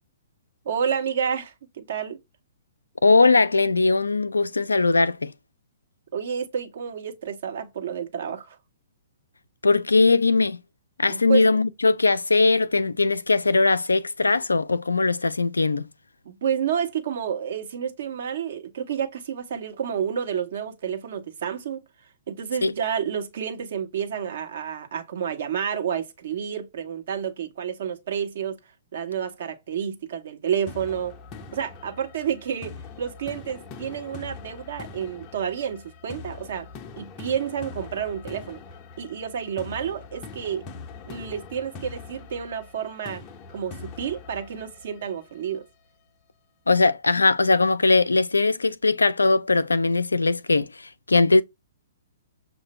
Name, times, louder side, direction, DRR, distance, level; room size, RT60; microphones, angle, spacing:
voice 1, 0.6-2.2 6.1-8.6 11.1-11.5 16.2-21.8 22.3-28.6 28.9-31.2 31.5-36.7 37.0-38.6 39.0-40.6 41.1-43.2 43.5-45.7, right 8 dB, 55° right, 1.2 m, -30 dB
voice 2, 3.0-5.3 9.6-10.6 11.0-15.9 22.6-22.7 46.7-51.4, left 3 dB, 80° left, 0.4 m, -20 dB
sound 1, 30.7-45.6, left 4 dB, 30° left, 0.6 m, -42 dB
6.6 x 2.5 x 3.0 m
figure-of-eight pair, 120°, 0 cm